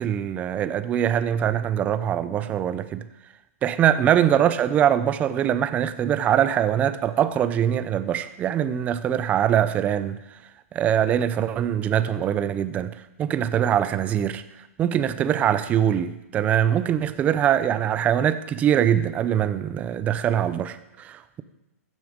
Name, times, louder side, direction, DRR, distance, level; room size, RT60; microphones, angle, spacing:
voice 1, 0.0-3.0 3.6-10.2 10.7-14.4 14.8-21.4, right 10 dB, 15° right, 12 dB, 0.5 m, -23 dB
15.5 x 9.4 x 5.2 m, 0.94 s
hypercardioid pair, 150°, 8 cm